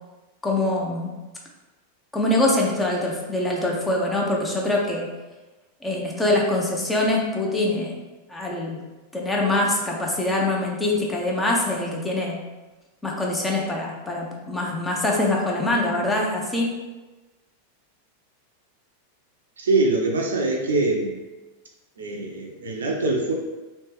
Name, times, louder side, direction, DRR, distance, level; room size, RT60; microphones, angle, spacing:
voice 1, 0.4-1.1 2.1-5.1 5.8-7.9 8.3-8.8 9.1-12.4 13.0-16.7, left 2 dB, 10° left, -2 dB, 0.6 m, -24 dB
voice 2, 19.6-21.1 22.0-23.3, right 2 dB, 65° right, 1 dB, 0.5 m, -23 dB
3.2 x 2.9 x 3.0 m, 1.2 s
figure-of-eight pair, 90°, 0 cm